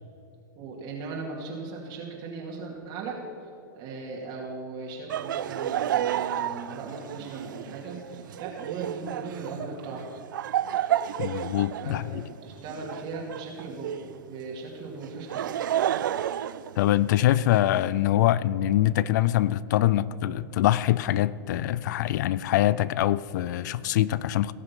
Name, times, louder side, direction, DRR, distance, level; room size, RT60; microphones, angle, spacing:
voice 1, 0.6-10.1 11.8-12.0 12.4-15.5, right 4 dB, 45° right, 2.5 m, -38 dB
Laughter, 5.1-14.2 15.0-17.4, right 11 dB, 75° right, 0.4 m, -31 dB
voice 2, 11.2-12.2 16.8-24.5, left 13 dB, 65° left, 0.4 m, -24 dB
18.0 x 6.3 x 6.0 m
hypercardioid pair, 110°, 11 cm